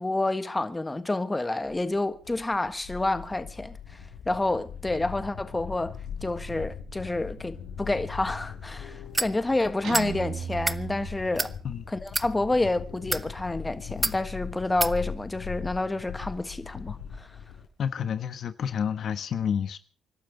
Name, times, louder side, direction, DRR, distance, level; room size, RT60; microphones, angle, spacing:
voice 1, 0.0-3.8 4.2-5.9 6.2-11.5 11.9-17.3, left 2 dB, 15° left, 1.5 m, -29 dB
sound 1, 1.7-17.7, left 7 dB, 80° left, 5.7 m, -40 dB
sound 2, 9.1-9.3 9.9-10.1 10.5-10.8 11.4-11.5 12.1-12.3 13.0-13.3 14.0-14.2 14.8-14.9, right 2 dB, 20° right, 0.8 m, -27 dB
Guitar, 9.8-11.9, right 8 dB, 70° right, 2.0 m, -37 dB
voice 2, 17.8-19.8, left 8 dB, 60° left, 1.2 m, -29 dB
28.5 x 12.0 x 3.9 m
cardioid pair, 90°, 0 cm